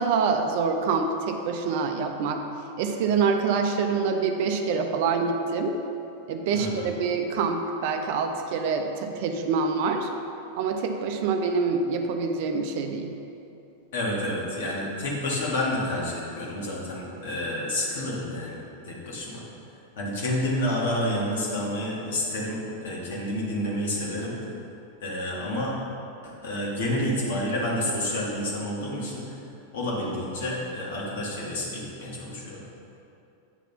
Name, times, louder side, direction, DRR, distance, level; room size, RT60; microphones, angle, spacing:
voice 1, 0.0-2.4 2.8-5.8 6.3-10.1 10.6-13.1, right 5 dB, 50° right, 5 dB, 0.6 m, -26 dB
voice 2, 6.5-6.9 13.9-19.4 20.0-24.4 25.0-25.7 26.2-29.4 29.7-32.6, left 1 dB, 55° left, -4 dB, 2.0 m, -29 dB
8.9 x 4.2 x 5.7 m, 2.8 s
figure-of-eight pair, 90°, 0 cm